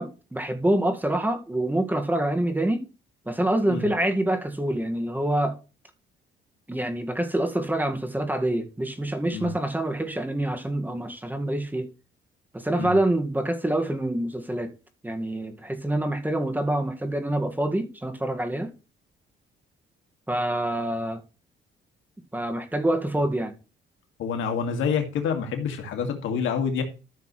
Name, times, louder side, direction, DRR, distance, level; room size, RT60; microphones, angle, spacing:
voice 1, 0.0-2.8 3.3-5.6 6.7-11.9 12.5-14.7 15.0-18.7 20.3-21.2 22.3-23.5, right 1 dB, 10° right, 1.8 m, -26 dB
voice 2, 24.2-26.8, left 6 dB, 80° left, 2.1 m, -27 dB
14.0 x 6.7 x 3.2 m
cardioid pair, 90°, 20 cm